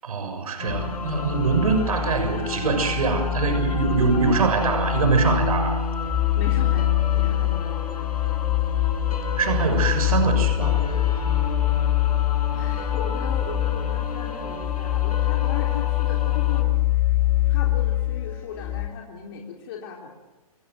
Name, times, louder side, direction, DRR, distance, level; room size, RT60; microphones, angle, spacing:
voice 1, 0.0-5.8 9.4-11.0, right 4 dB, 70° right, 7 dB, 6.6 m, -23 dB
sound 1, 0.6-16.6, left 3 dB, 80° left, 5.7 m, -32 dB
sound 2, 0.7-18.8, left 13 dB, 10° left, 6.1 m, -24 dB
voice 2, 6.4-8.3 12.5-16.7 17.5-20.1, left 6 dB, 40° left, -1 dB, 3.9 m, -38 dB
29.0 x 17.5 x 8.0 m, 1.0 s
hypercardioid pair, 155°, 20 cm